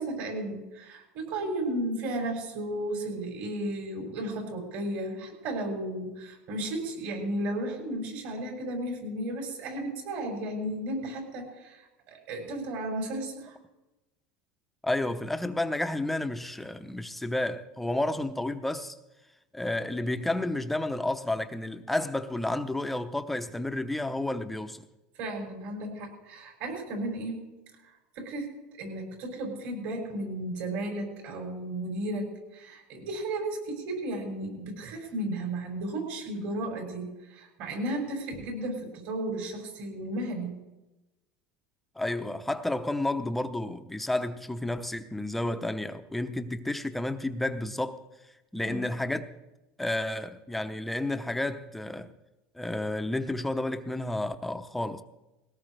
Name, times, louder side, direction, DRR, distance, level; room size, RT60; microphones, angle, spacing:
voice 1, 0.0-11.8 12.1-13.6 25.2-27.5 28.2-28.5 28.8-40.5 48.6-48.8, right 1 dB, 60° right, 6.8 m, -34 dB
voice 2, 14.8-19.0 19.5-24.8 42.0-48.0 48.5-49.3 49.8-52.1 52.5-55.0, left 1 dB, 5° left, 0.7 m, -31 dB
21.0 x 17.5 x 3.3 m
supercardioid pair, 145°, 3 cm